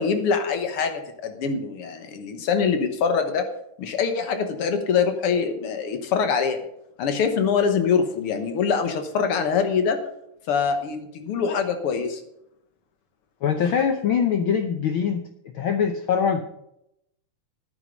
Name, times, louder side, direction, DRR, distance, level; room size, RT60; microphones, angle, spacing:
voice 1, 0.0-3.5 3.8-6.7 7.0-10.0 10.5-12.2, left 6 dB, 55° left, 7 dB, 1.9 m, -24 dB
voice 2, 13.4-15.3 15.5-16.4, left 7 dB, 80° left, 7 dB, 1.1 m, -23 dB
11.0 x 9.6 x 5.3 m, 0.78 s
omnidirectional pair, 3.4 m